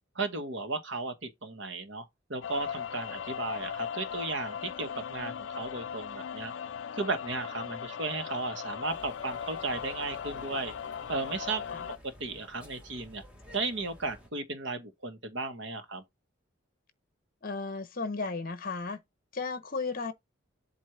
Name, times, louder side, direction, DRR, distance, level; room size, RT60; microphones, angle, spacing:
voice 1, 0.1-2.0 2.3-6.5 6.9-10.7 11.1-11.6 12.2-13.2 13.5-16.0, right 3 dB, 60° right, 1.2 m, -35 dB
sound 1, 2.4-12.0, left 8 dB, 70° left, 0.4 m, -38 dB
sound 2, 8.9-14.3, equal, 5° right, 1.5 m, -53 dB
voice 2, 17.4-19.0 19.3-20.1, left 4 dB, 45° left, 0.9 m, -34 dB
7.8 x 2.7 x 5.7 m
head